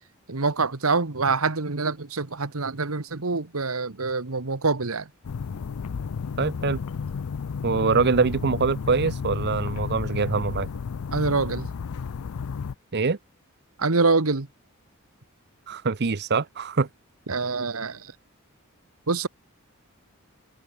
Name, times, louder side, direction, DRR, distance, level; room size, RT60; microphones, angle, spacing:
voice 1, 0.3-5.1 11.1-11.7 13.8-14.5 17.3-18.1 19.1-19.3, right 4 dB, 80° right, 1.5 m, -25 dB
sound 1, 5.2-12.7, left 6 dB, 90° left, 0.5 m, -32 dB
voice 2, 6.4-6.8 7.6-10.7 12.9-13.2 15.7-16.9, right 4 dB, 50° right, 0.8 m, -24 dB
head